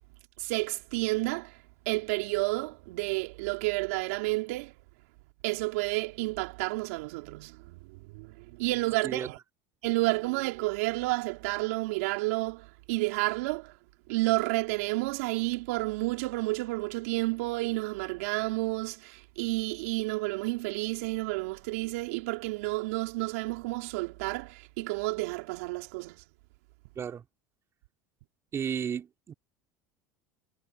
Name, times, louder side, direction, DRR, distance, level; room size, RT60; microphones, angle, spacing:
voice 1, 0.4-4.7 5.4-9.4 9.8-13.8 14.1-26.2, right 23 dB, 75° right, 3.7 m, -31 dB
voice 2, 28.5-29.3, right 8 dB, 35° right, 3.4 m, -33 dB
hypercardioid pair, 85°, 8 cm